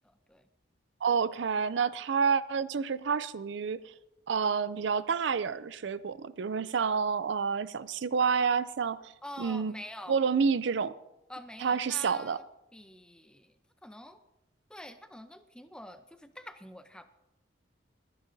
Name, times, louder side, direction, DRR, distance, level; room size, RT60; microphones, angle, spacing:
voice 1, 0.0-0.5 9.2-10.2 11.3-12.5 12.7-13.5 13.8-14.2 14.7-17.1, left 1 dB, 5° left, 9 dB, 0.6 m, -46 dB
voice 2, 1.0-3.8 4.3-9.0 9.4-9.7 10.1-10.9 11.6-12.4, right 6 dB, 70° right, 16 dB, 0.4 m, -29 dB
21.0 x 10.0 x 2.7 m, 0.92 s
head